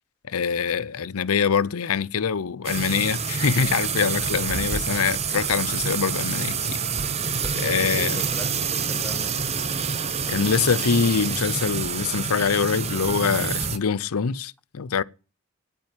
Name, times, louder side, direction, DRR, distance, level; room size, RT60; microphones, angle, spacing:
voice 1, 0.3-6.8 7.6-8.2 10.3-15.0, left 6 dB, 85° left, 0.6 m, -24 dB
sound 1, 2.6-13.8, right 6 dB, 30° right, 0.8 m, -27 dB
voice 2, 7.2-9.5, left 1 dB, 5° left, 0.8 m, -40 dB
10.0 x 8.8 x 9.4 m
head